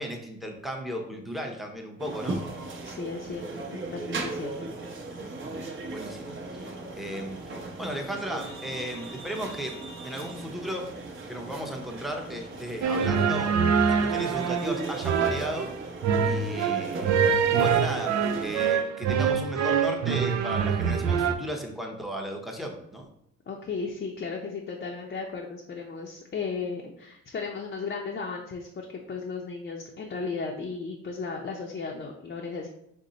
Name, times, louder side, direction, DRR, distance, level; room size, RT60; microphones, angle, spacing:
voice 1, 0.0-2.4 5.9-10.9 11.3-13.6 13.9-15.7 16.2-17.2 17.5-23.1, equal, ahead, 2 dB, 0.8 m, -35 dB
sound 1, 2.0-18.7, right 2 dB, 40° right, 0.8 m, -38 dB
voice 2, 2.8-3.5 3.7-4.7 23.5-32.7, left 4 dB, 35° left, 0 dB, 0.6 m, -35 dB
sound 2, 12.8-21.3, right 7 dB, 65° right, 0.5 m, -25 dB
5.2 x 2.1 x 3.9 m, 0.76 s
cardioid pair, 90°, 30 cm